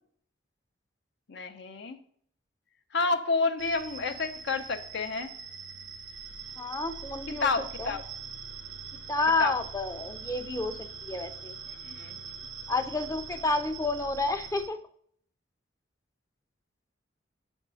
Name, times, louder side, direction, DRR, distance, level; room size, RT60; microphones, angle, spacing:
voice 1, 1.3-2.0 2.9-5.3 7.4-8.0 9.4-9.5 11.8-12.2, left 4 dB, 60° left, 7 dB, 0.6 m, -29 dB
sound 1, 3.6-14.7, right 6 dB, 85° right, 0.9 m, -43 dB
voice 2, 6.6-7.5 7.8-7.9 9.1-11.5 12.7-14.8, left 3 dB, 15° left, 8 dB, 0.5 m, -30 dB
7.5 x 3.6 x 6.2 m, 0.62 s
head